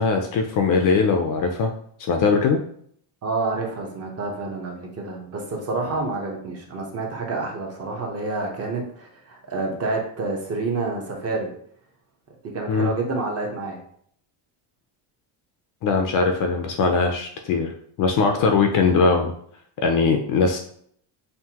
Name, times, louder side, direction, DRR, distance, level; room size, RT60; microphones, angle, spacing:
voice 1, 0.0-1.7 2.1-2.6 12.7-12.9 15.8-17.7 18.0-19.3 19.8-20.6, left 4 dB, 45° left, 4 dB, 0.4 m, -20 dB
voice 2, 3.2-11.5 12.5-13.8, right 3 dB, 30° right, 0 dB, 0.8 m, -28 dB
5.6 x 2.6 x 2.8 m, 0.63 s
cardioid pair, 160°, 49 cm